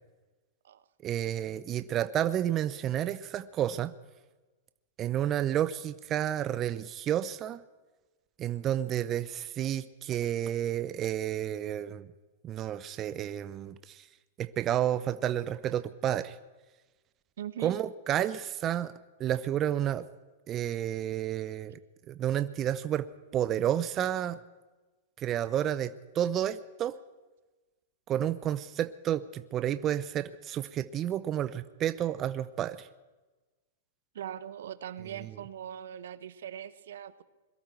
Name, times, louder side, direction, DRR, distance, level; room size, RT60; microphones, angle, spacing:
voice 1, 1.0-3.9 5.0-7.6 8.4-12.1 12.4-14.1 14.4-16.4 17.6-18.9 19.2-20.1 20.5-21.7 22.1-23.1 23.3-24.4 25.2-27.0 28.1-32.9, right 11 dB, 30° right, 13 dB, 0.5 m, -30 dB
voice 2, 17.4-17.7 34.1-37.2, right 10 dB, 75° right, 15 dB, 0.8 m, -41 dB
22.0 x 13.5 x 4.5 m, 1.2 s
hypercardioid pair, 125°, 0 cm